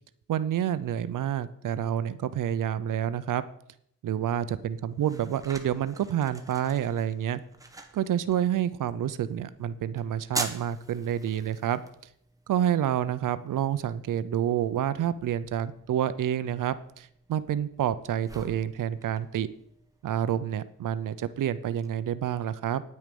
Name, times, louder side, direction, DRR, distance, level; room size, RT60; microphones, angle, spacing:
voice 1, 0.3-3.4 4.0-7.4 7.9-11.8 12.5-19.5 20.0-22.8, right 10 dB, 70° right, 14 dB, 0.7 m, -28 dB
sound 1, 4.4-21.9, right 2 dB, 10° right, 1.2 m, -45 dB
9.7 x 9.5 x 5.2 m, 0.71 s
wide cardioid pair, 150°, 32 cm